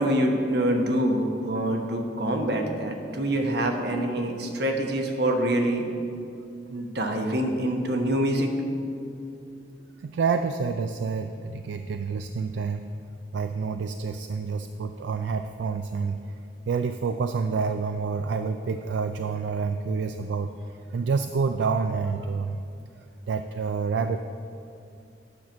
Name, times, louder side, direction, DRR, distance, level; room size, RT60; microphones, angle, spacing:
voice 1, 0.0-5.8 6.7-8.5, right 1 dB, 65° right, 3 dB, 1.1 m, -25 dB
voice 2, 10.0-12.9 13.3-16.2 16.7-22.6 23.3-24.2, right 5 dB, 85° right, 8 dB, 0.3 m, -28 dB
9.7 x 5.9 x 6.3 m, 2.5 s
head